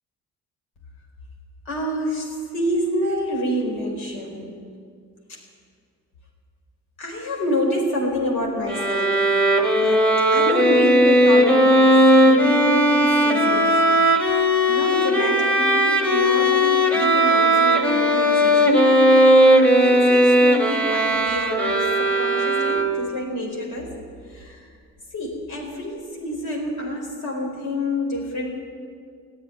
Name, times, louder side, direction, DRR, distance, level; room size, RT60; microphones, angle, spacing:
voice 1, 1.6-4.6 5.3-5.4 7.0-9.4 9.7-13.7 14.7-23.9 24.3-24.6 25.1-28.5, left 1 dB, 75° left, 0 dB, 4.5 m, -28 dB
Bowed string instrument, 8.7-23.2, equal, 5° left, 1.8 m, -17 dB
16.0 x 9.3 x 9.7 m, 2.1 s
cardioid pair, 90°, 30 cm